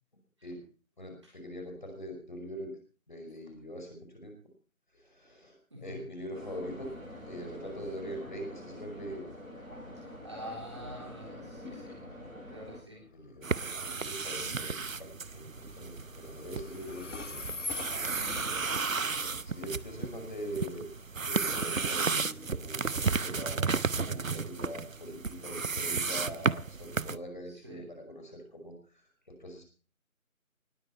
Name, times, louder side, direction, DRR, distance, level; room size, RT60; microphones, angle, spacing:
voice 1, 1.0-2.8 3.1-4.4 4.9-6.9 7.3-9.3 13.0-13.5 13.8-17.5 18.9-20.9 21.3-29.6, equal, 35° left, 4 dB, 5.3 m, -43 dB
voice 2, 5.7-6.1 9.9-12.0 12.5-13.1 23.9-24.3 27.5-27.9, equal, 20° right, -1 dB, 4.0 m, -47 dB
sound 1, 6.3-12.8, left 1 dB, ahead, 6.9 m, -46 dB
Train, 12.7-27.4, left 3 dB, 60° left, 0.8 m, -46 dB
sound 2, 13.4-27.2, right 4 dB, 70° right, 0.8 m, -33 dB
20.0 x 15.0 x 4.4 m, 0.39 s
figure-of-eight pair, 170°, 42 cm